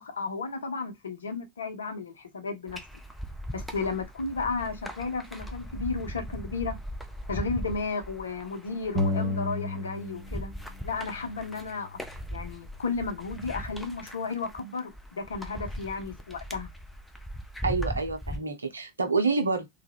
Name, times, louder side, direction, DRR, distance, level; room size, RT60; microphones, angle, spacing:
voice 1, 0.0-2.8 3.5-6.8 7.3-10.5 10.8-12.0 12.3-16.7, left 4 dB, 70° left, 0.6 m, -33 dB
sound 1, 2.7-18.4, equal, ahead, 0.4 m, -39 dB
sound 2, 8.9-10.5 10.7-12.5, left 2 dB, 40° right, 0.8 m, -33 dB
voice 2, 17.6-19.7, right 4 dB, 75° right, 0.5 m, -27 dB
2.2 x 2.1 x 3.3 m
figure-of-eight pair, 90°, 0 cm